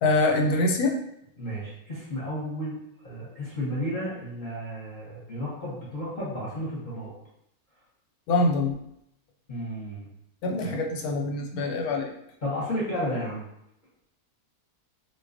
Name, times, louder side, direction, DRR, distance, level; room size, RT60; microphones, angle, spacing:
voice 1, 0.0-1.0 8.3-8.8 10.4-12.1, left 2 dB, 85° left, 2 dB, 1.1 m, -24 dB
voice 2, 1.4-2.8 3.0-7.1 9.5-10.1 10.6-10.7 12.4-13.4, equal, 40° left, -8 dB, 0.8 m, -32 dB
3.9 x 2.2 x 2.5 m, 0.78 s
omnidirectional pair, 1.6 m